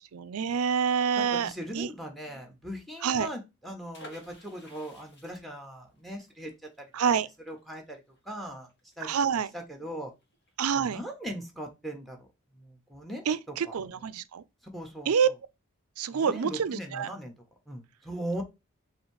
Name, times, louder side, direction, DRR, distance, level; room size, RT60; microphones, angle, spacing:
voice 1, 0.0-1.9 3.0-3.3 6.9-7.3 9.0-9.5 10.6-11.0 13.3-14.4 15.1-15.3 16.0-17.1, right 7 dB, 75° right, 0.5 m, -27 dB
voice 2, 1.2-6.5 7.5-8.7 9.0-9.1 9.5-10.1 10.7-12.3 12.5-13.3 13.6-13.8 14.7-15.1 16.1-17.3 17.7-18.4, equal, ahead, 1.1 m, -39 dB
sound 1, 3.9-9.6 9.8-9.9 10.2-10.5, left 1 dB, 50° left, 1.6 m, -53 dB
4.1 x 2.8 x 4.6 m
head